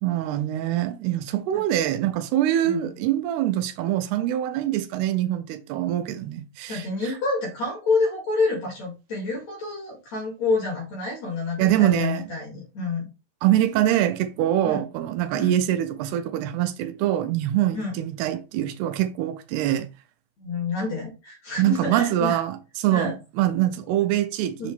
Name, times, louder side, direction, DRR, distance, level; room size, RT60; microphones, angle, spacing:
voice 1, 0.0-6.8 11.6-12.2 13.4-19.9 21.6-24.7, right 12 dB, 80° right, 2.9 m, -24 dB
voice 2, 6.7-13.1 14.6-14.8 15.3-15.6 17.7-18.0 20.4-22.4 22.9-23.2 24.6-24.7, left 3 dB, 50° left, 3.1 m, -28 dB
7.0 x 5.0 x 3.6 m
omnidirectional pair, 4.7 m